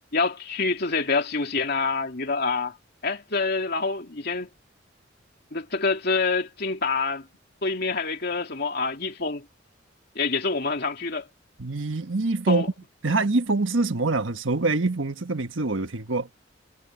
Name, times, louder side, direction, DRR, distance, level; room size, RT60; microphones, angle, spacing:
voice 1, 0.1-2.8 3.0-4.5 5.5-7.3 7.6-9.5 10.1-11.3 12.5-12.7, left 4 dB, 55° left, 2.8 m, -26 dB
voice 2, 11.6-12.6 13.0-16.3, right 3 dB, 85° right, 1.4 m, -25 dB
head